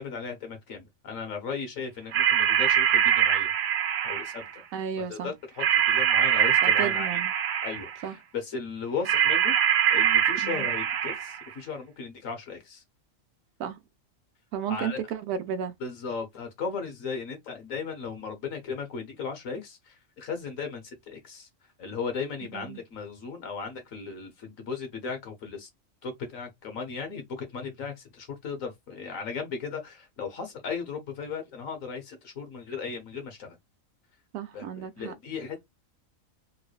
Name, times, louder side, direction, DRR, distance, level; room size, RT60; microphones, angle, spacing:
voice 1, 0.0-3.5 4.0-4.6 5.1-7.2 7.6-9.5 9.9-12.8 14.7-15.0 15.8-21.5 21.8-25.7 26.0-33.6 34.5-35.6, left 5 dB, 80° left, 1.5 m, -36 dB
sound 1, 2.1-4.5 5.6-8.0 9.0-11.5, right 9 dB, 65° right, 0.8 m, -23 dB
voice 2, 4.7-5.3 6.6-7.3 8.0-8.2 10.4-10.7 13.6-13.8 14.5-15.7 22.5-22.8 34.3-35.1, right 8 dB, 80° right, 1.1 m, -33 dB
3.4 x 3.2 x 2.3 m
omnidirectional pair, 1.4 m